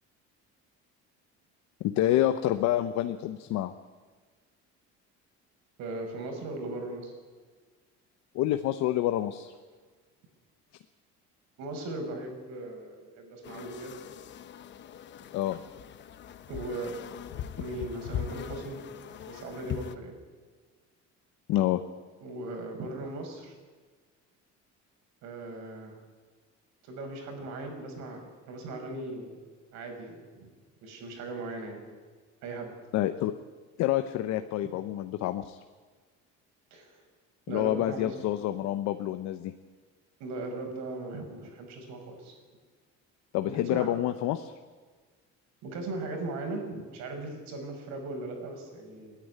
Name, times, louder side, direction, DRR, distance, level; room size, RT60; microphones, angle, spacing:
voice 1, 1.8-3.7 8.3-9.5 15.3-15.6 21.5-21.8 32.9-33.3 33.8-35.6 37.5-39.5 43.3-44.5, left 13 dB, 65° left, 9 dB, 1.0 m, -28 dB
voice 2, 5.8-7.1 11.6-14.0 16.5-17.0 17.5-18.8 19.1-20.1 22.2-23.5 25.2-26.0 26.8-29.4 29.7-30.5 30.8-31.8 32.4-32.7 36.7-37.0 37.5-38.2 40.2-42.4 43.4-43.9 45.6-49.2, right 2 dB, 65° right, 3 dB, 5.5 m, -38 dB
sound 1, 13.4-19.9, left 9 dB, 40° left, 0.9 m, -40 dB
29.5 x 10.5 x 9.6 m, 1.5 s
cardioid pair, 180°, 29 cm